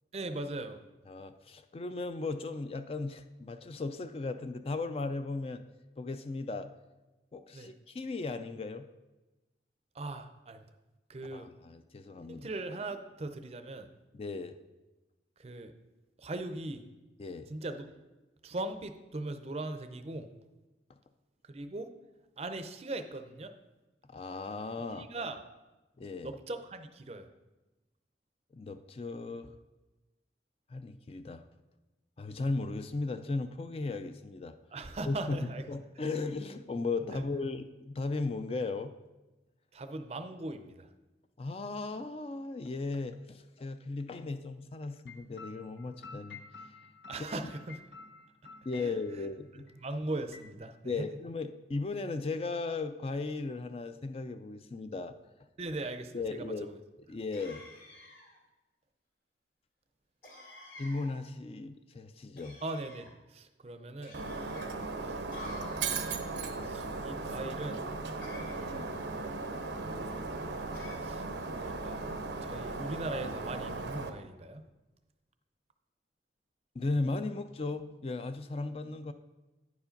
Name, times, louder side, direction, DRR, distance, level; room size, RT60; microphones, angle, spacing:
voice 1, 0.1-0.8 7.5-7.7 9.9-10.7 11.1-11.5 12.3-13.9 15.4-15.7 16.2-16.8 17.5-18.0 18.4-20.3 21.4-21.9 22.4-23.5 24.9-25.5 26.2-27.3 34.7-35.7 37.1-37.2 39.7-40.9 47.1-47.8 48.8-49.3 49.6-51.1 55.6-56.8 62.6-64.2 65.0-66.0 66.6-67.9 69.7-70.2 71.0-71.3 71.6-72.0 72.4-74.6, right 2 dB, 35° right, 9 dB, 0.5 m, -40 dB
voice 2, 1.1-5.6 6.0-6.7 7.3-8.9 11.3-12.5 14.2-14.6 17.2-17.5 24.1-25.1 26.0-26.3 28.5-29.5 30.7-31.4 32.2-34.6 35.1-35.4 35.7-38.9 41.4-46.4 48.7-49.7 50.8-55.2 56.1-56.7 57.1-57.7 60.8-62.6 68.5-69.0 76.8-79.1, left 3 dB, 35° left, 9 dB, 0.3 m, -36 dB
sound 1, 45.1-49.3 49.7-49.8 50.0-50.6, left 4 dB, 85° left, 0.9 m, -51 dB
sound 2, 57.3-58.4 60.2-61.2 62.4-63.1 64.0-64.7 65.3-66.3 68.2-69.0 70.7-71.0, left 1 dB, 60° left, 2.1 m, -49 dB
Shatter, 64.1-74.1, right 3 dB, 85° right, 0.7 m, -37 dB
9.5 x 4.9 x 5.1 m, 1.1 s
head